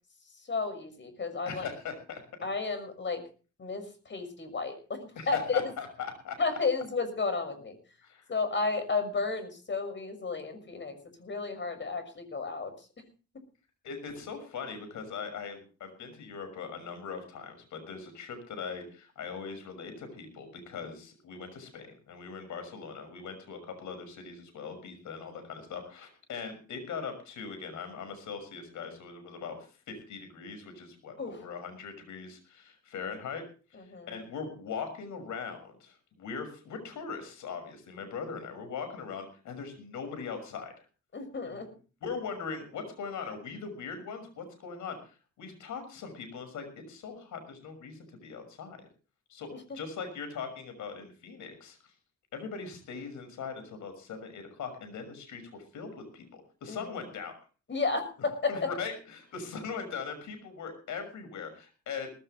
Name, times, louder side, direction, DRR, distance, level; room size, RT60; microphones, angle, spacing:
voice 1, 0.5-1.7 2.4-3.2 3.6-5.6 6.4-7.8 8.3-12.7 31.2-31.4 33.7-34.2 41.1-41.7 49.5-49.6 56.7-56.9 57.7-58.7, left 4 dB, 40° left, 8 dB, 6.4 m, -32 dB
voice 2, 1.5-2.2 5.2-6.4 8.0-8.3 13.8-33.4 33.7-40.7 41.6-41.7 42.0-48.9 49.3-49.5 49.7-51.8 52.3-57.3 58.5-62.1, left 5 dB, 75° left, 8 dB, 6.3 m, -40 dB
19.0 x 16.0 x 3.3 m, 0.37 s
cardioid pair, 90°, 30 cm